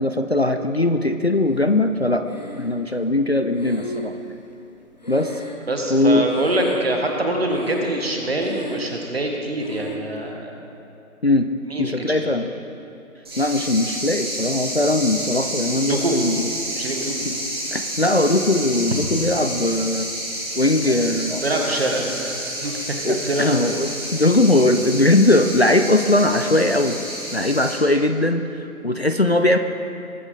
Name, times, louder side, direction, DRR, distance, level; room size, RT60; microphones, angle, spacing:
voice 1, 0.0-2.3 2.6-4.4 5.1-5.3 5.9-6.3 11.2-11.5 11.8-12.5 13.4-16.5 17.2-17.3 17.7-20.1 20.6-21.4 23.0-27.0 27.3-29.6, left 2 dB, 45° left, 7 dB, 0.5 m, -20 dB
Breathing, 2.3-3.0 3.5-6.0 6.3-7.1 7.5-8.1 8.3-9.0 9.6-10.1, equal, 30° left, 0.9 m, -35 dB
voice 2, 5.7-10.6 11.7-12.3 15.8-16.1 16.7-17.1 20.7-22.8 23.1-23.5, right 1 dB, 45° right, 2 dB, 1.7 m, -25 dB
sound 1, 13.2-27.7, right 1 dB, 15° right, 1.9 m, -30 dB
21.0 x 8.4 x 3.9 m, 2.7 s
figure-of-eight pair, 160°, 43 cm